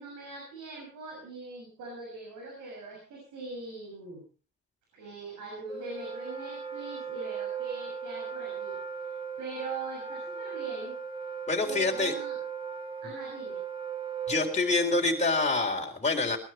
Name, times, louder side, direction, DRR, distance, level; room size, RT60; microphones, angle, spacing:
voice 1, 0.0-4.2 4.9-8.8 9.0-10.9 11.6-12.4 13.0-13.6, right 3 dB, 85° right, 0 dB, 6.7 m, -41 dB
Wind instrument woodwind instrument, 5.7-15.6, right 6 dB, 20° right, 2.5 m, -37 dB
voice 2, 11.5-12.1 14.3-16.4, left 3 dB, 20° left, 0 dB, 4.1 m, -26 dB
20.5 x 12.5 x 4.3 m, 0.36 s
cardioid pair, 90°, 30 cm